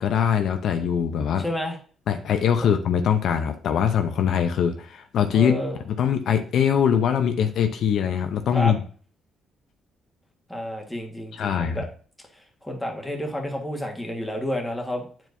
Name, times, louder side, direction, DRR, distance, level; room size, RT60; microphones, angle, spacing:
voice 1, 0.0-1.4 2.1-5.5 5.9-8.8 11.3-11.8, left 8 dB, 70° left, 6 dB, 0.6 m, -22 dB
voice 2, 1.4-1.8 5.3-5.8 8.5-8.7 10.5-11.9 12.3-15.1, left 1 dB, 5° left, 1 dB, 1.5 m, -30 dB
8.9 x 4.6 x 2.6 m, 0.42 s
cardioid pair, 90°, 0 cm